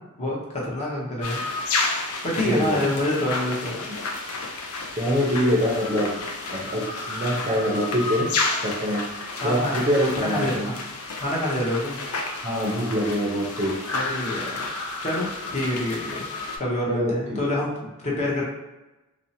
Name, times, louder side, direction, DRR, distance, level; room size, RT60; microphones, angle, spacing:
voice 1, 0.2-1.4 2.0-3.8 9.4-9.7 10.1-10.7 11.2-12.0 13.9-14.5 15.0-16.3 16.6-18.4, left 1 dB, 30° left, -4 dB, 0.7 m, -27 dB
sound 1, 1.2-16.6, left 3 dB, 70° left, 0.4 m, -31 dB
voice 2, 2.4-2.8 3.9-4.0 5.0-6.1 6.5-8.3 8.6-9.0 9.4-10.7 12.4-13.7 16.9-17.4, equal, 30° right, -4 dB, 0.5 m, -24 dB
2.7 x 2.0 x 2.6 m, 1.0 s
head